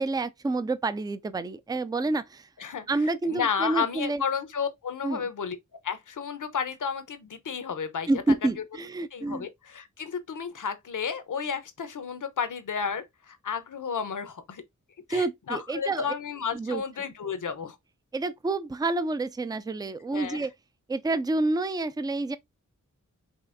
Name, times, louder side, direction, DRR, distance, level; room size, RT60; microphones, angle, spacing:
voice 1, 0.0-2.5 2.9-4.2 5.0-5.2 8.1-9.5 15.1-16.1 16.5-16.8 18.1-20.5 20.9-22.4, right 2 dB, 15° right, 0.4 m, -28 dB
voice 2, 3.3-5.6 5.8-8.1 9.1-14.6 15.1-17.8 20.1-20.5, left 6 dB, 75° left, 0.9 m, -32 dB
5.3 x 3.3 x 2.6 m
wide cardioid pair, 75°, 31 cm